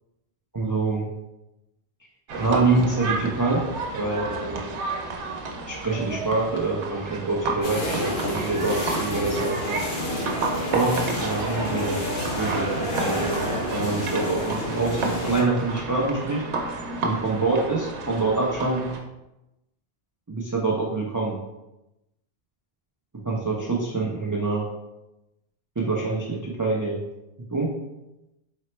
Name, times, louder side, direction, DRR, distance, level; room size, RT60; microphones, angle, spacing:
voice 1, 0.5-1.1 2.4-3.6 4.0-4.7 5.7-9.8 10.7-12.0 12.3-13.3 13.7-16.5 17.0-18.9 20.3-21.4 23.2-24.7 25.8-27.0 27.5-27.7, right 3 dB, 30° right, -3 dB, 0.3 m, -25 dB
sound 1, 2.3-19.0, right 3 dB, 85° right, 0.9 m, -32 dB
sound 2, 7.6-15.4, equal, 60° left, 1.0 m, -29 dB
4.1 x 2.0 x 4.2 m, 0.94 s
omnidirectional pair, 1.1 m